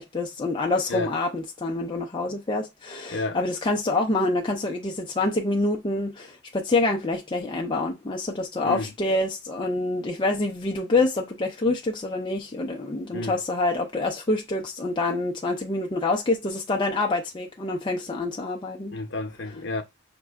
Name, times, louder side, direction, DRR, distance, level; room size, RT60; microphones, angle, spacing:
voice 1, 0.0-19.0, left 2 dB, 20° left, 0.4 m, -26 dB
voice 2, 18.9-19.8, left 3 dB, 55° left, 0.7 m, -31 dB
5.7 x 2.2 x 3.5 m
head